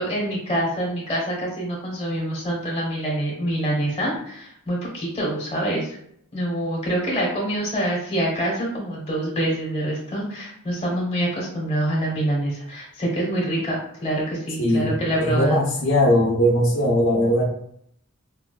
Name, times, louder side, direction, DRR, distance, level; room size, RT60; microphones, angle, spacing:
voice 1, 0.0-6.0 6.3-15.6, right 1 dB, 25° left, -3 dB, 1.0 m, -26 dB
voice 2, 14.6-14.9 15.2-17.4, equal, 65° left, -3 dB, 0.8 m, -19 dB
4.5 x 2.3 x 2.3 m, 0.69 s
head